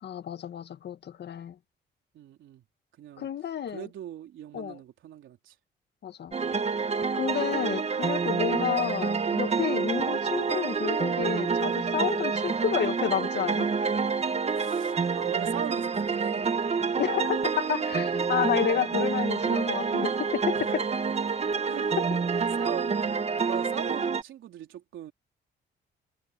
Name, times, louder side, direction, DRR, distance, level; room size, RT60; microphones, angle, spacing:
voice 1, 0.0-1.6 3.2-3.9 4.5-4.8 6.0-6.3 7.1-13.7 17.0-20.8 22.1-22.2, left 9 dB, 60° left, 1.7 m, -30 dB
voice 2, 2.1-2.6 3.0-3.3 3.7-5.6 9.8-10.0 14.5-16.5 20.5-21.1 21.6-22.0 22.3-25.1, right 11 dB, 75° right, 3.8 m, -40 dB
sound 1, 6.3-24.2, right 5 dB, 30° right, 1.5 m, -28 dB
cardioid pair, 90°, 20 cm